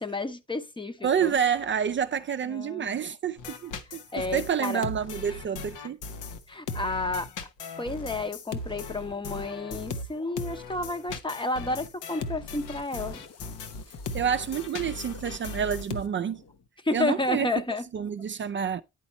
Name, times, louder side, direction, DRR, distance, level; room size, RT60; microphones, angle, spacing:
voice 1, 0.0-1.3 2.5-2.9 4.1-4.8 6.5-7.3 7.8-13.2 16.8-17.8, left 2 dB, 15° left, 0.8 m, -31 dB
voice 2, 1.0-6.0 14.1-16.4 16.9-17.5 17.9-18.8, right 8 dB, 40° right, 0.5 m, -28 dB
sound 1, 3.4-16.0, left 3 dB, 85° left, 0.9 m, -38 dB
sound 2, 12.5-16.7, left 4 dB, 55° left, 0.9 m, -49 dB
9.9 x 4.1 x 4.3 m
cardioid pair, 90°, 30 cm